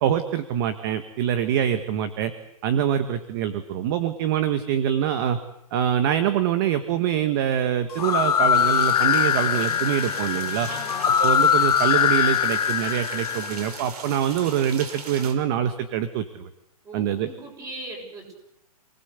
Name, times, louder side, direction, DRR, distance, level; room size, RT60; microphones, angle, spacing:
voice 1, 0.0-2.3 2.6-5.4 5.7-10.7 11.2-16.5 16.9-17.3, right 9 dB, 35° right, 10 dB, 1.5 m, -24 dB
sound 1, 7.9-13.7, left 9 dB, 80° left, 1.3 m, -22 dB
sound 2, 8.5-15.3, right 4 dB, 85° right, 5.0 m, -39 dB
voice 2, 10.7-11.1 16.8-18.3, right 2 dB, 15° right, 2 dB, 7.4 m, -39 dB
28.0 x 19.5 x 8.2 m, 0.82 s
hypercardioid pair, 160°, 20 cm